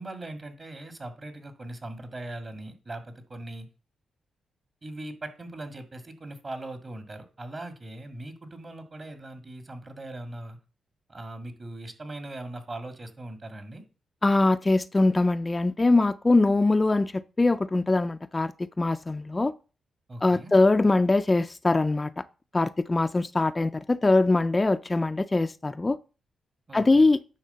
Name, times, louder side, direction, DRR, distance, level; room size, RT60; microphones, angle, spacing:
voice 1, 0.0-3.7 4.8-10.6 11.1-13.8 20.1-20.5 26.7-27.0, right 1 dB, 35° right, 1.8 m, -40 dB
voice 2, 14.2-18.5 18.8-19.5 20.2-22.2 22.5-26.0 26.7-27.2, left 2 dB, 25° left, 0.4 m, -22 dB
9.7 x 3.5 x 6.8 m
cardioid pair, 75°, 0 cm